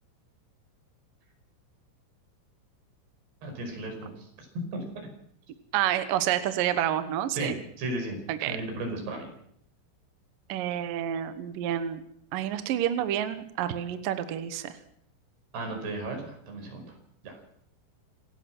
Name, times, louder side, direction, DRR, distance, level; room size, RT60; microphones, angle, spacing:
voice 1, 3.4-4.1 4.7-4.8 7.3-8.2 8.5-9.3 15.5-16.9 17.2-17.3, right 2 dB, 55° right, 3 dB, 7.2 m, -34 dB
voice 2, 5.7-7.5 8.3-8.6 10.5-12.0 12.3-14.8, right 11 dB, 75° right, 10 dB, 2.0 m, -29 dB
27.0 x 16.0 x 6.1 m, 0.71 s
omnidirectional pair, 5.5 m